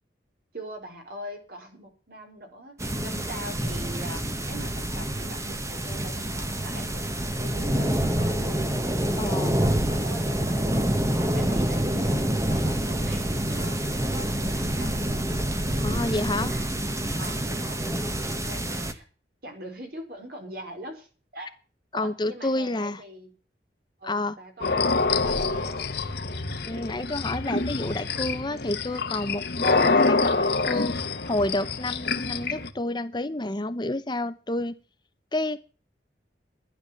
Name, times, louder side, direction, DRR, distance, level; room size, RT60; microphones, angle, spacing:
voice 1, 0.5-8.7 9.2-15.3 15.6-16.7 17.2-17.9 18.3-19.1 19.4-21.5 21.9-23.3 24.0-25.9, equal, 55° right, 3 dB, 4.7 m, -42 dB
sound 1, 2.8-18.9, right 1 dB, 15° right, 1.3 m, -27 dB
voice 2, 9.2-9.5 15.8-16.5 21.9-23.0 24.0-24.4 26.6-34.8 35.3-35.6, left 2 dB, 25° left, 11 dB, 0.8 m, -29 dB
sound 2, 24.6-32.7, left 3 dB, 60° left, 1.3 m, -26 dB
12.0 x 10.5 x 7.1 m, 0.37 s
head